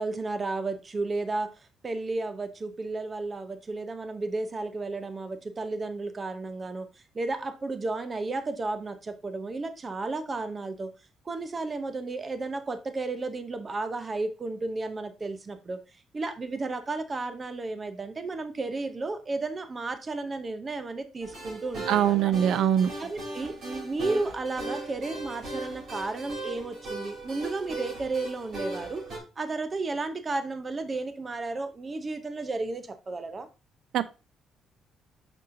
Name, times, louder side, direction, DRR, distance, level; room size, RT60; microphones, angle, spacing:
voice 1, 0.0-1.5 1.8-6.9 7.1-10.9 11.3-15.8 16.1-22.3 23.0-29.0 29.4-33.5, right 3 dB, 25° right, 0.7 m, -33 dB
sound 1, 21.2-29.2, right 2 dB, 55° right, 3.4 m, -38 dB
voice 2, 21.9-22.9 33.9-34.1, right 10 dB, 75° right, 0.4 m, -22 dB
6.6 x 5.4 x 2.6 m
cardioid pair, 155°, 0 cm